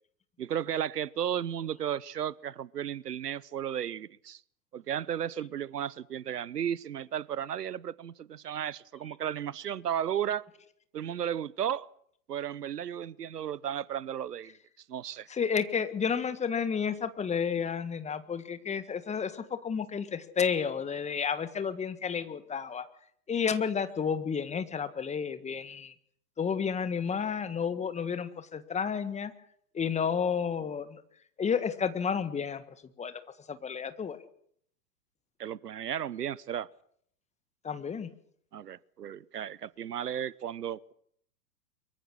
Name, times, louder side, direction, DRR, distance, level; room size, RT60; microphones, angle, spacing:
voice 1, 0.4-4.4 4.7-10.5 10.9-11.9 12.3-14.5 14.9-15.3 35.4-36.7 38.5-40.9, right 9 dB, 75° right, 0.9 m, -34 dB
voice 2, 15.3-22.8 23.3-25.9 26.4-29.3 29.7-31.0 31.4-32.6 33.0-33.1 33.5-34.2 37.6-38.1, left 6 dB, 15° left, 1.6 m, -31 dB
24.0 x 23.0 x 6.4 m
figure-of-eight pair, 100°, 47 cm